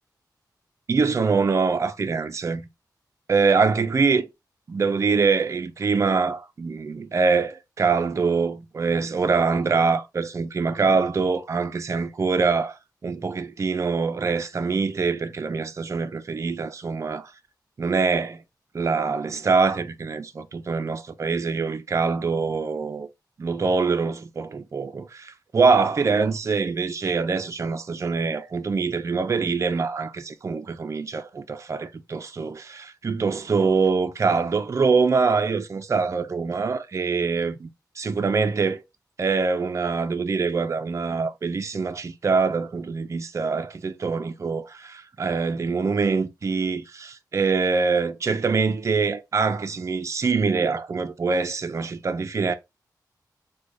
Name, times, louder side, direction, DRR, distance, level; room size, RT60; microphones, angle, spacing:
voice 1, 0.9-2.7 3.3-4.3 4.7-17.3 17.8-18.4 18.7-23.1 23.4-37.7 38.0-38.8 39.2-52.5, right 4 dB, 45° right, 0.4 m, -24 dB
3.2 x 2.2 x 3.8 m
wide cardioid pair, 115°, 7 cm